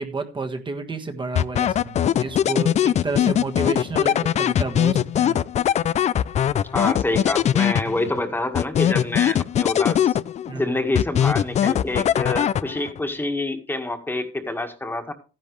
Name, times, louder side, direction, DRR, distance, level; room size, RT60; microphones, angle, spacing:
voice 1, 0.0-5.4 10.5-10.8, right 3 dB, 30° right, 5 dB, 1.6 m, -30 dB
sound 1, 1.4-8.2 8.5-10.6 11.0-13.0, left 10 dB, 40° left, 0.5 m, -21 dB
voice 2, 6.7-10.2 10.5-15.1, left 2 dB, 10° left, 6 dB, 1.8 m, -27 dB
13.5 x 10.5 x 3.2 m, 0.34 s
cardioid pair, 110°, 17 cm